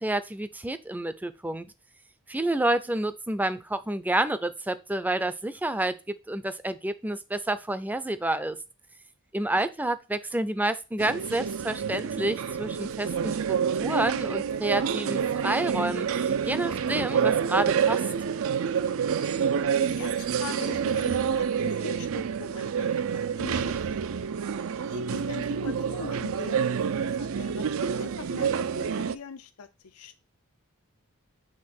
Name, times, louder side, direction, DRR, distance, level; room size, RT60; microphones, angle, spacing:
voice 1, 0.0-1.7 2.3-8.6 9.3-18.1, right 1 dB, 10° right, 0.5 m, -29 dB
sound 1, 11.0-29.2, right 7 dB, 65° right, 0.4 m, -28 dB
voice 2, 19.8-24.3 24.9-26.7 27.1-27.7 28.0-28.7 29.0-30.2, left 5 dB, 80° left, 0.6 m, -42 dB
6.6 x 3.4 x 5.9 m
head